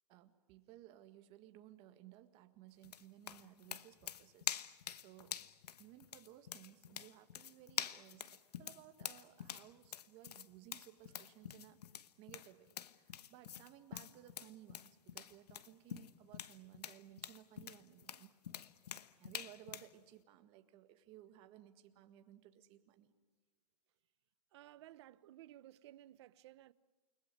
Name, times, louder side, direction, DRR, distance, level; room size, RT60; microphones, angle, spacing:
voice 1, 0.1-4.5 4.9-5.4 5.8-18.3 19.2-23.1, right 13 dB, 30° right, 1.8 m, -59 dB
sound 1, 2.8-19.9, left 9 dB, 85° left, 1.2 m, -46 dB
voice 2, 24.5-26.7, right 14 dB, 45° right, 0.9 m, -57 dB
29.5 x 20.0 x 9.7 m
hypercardioid pair, 165°, 20 cm